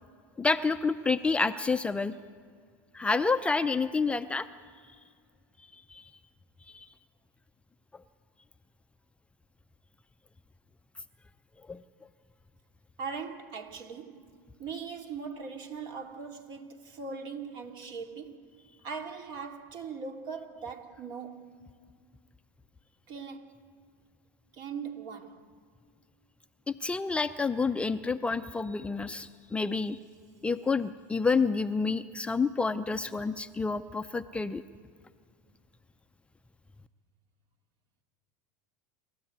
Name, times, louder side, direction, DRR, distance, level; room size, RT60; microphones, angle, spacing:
voice 1, 0.4-2.1 2.9-4.5 5.9-6.1 6.7-6.9 11.7-11.8 26.7-30.0 30.4-34.6, left 4 dB, 10° left, 0.6 m, -29 dB
voice 2, 13.0-14.3 14.6-18.5 18.8-21.5 23.1-23.6 24.5-25.5, right 5 dB, 50° right, 2.5 m, -40 dB
28.0 x 13.5 x 9.5 m
supercardioid pair, 110°, 10 cm